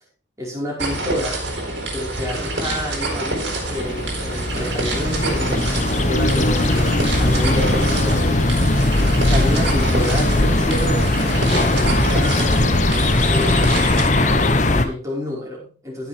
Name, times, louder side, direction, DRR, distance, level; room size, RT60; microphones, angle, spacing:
voice 1, 0.4-1.4 1.9-8.4 9.2-11.1 11.6-12.6 13.3-16.1, equal, 15° right, -4 dB, 5.0 m, -29 dB
sound 1, 0.8-14.1, right 2 dB, 70° right, 4.5 m, -27 dB
sound 2, 3.0-14.8, left 2 dB, 40° left, 1.1 m, -19 dB
15.5 x 7.1 x 3.6 m, 0.39 s
head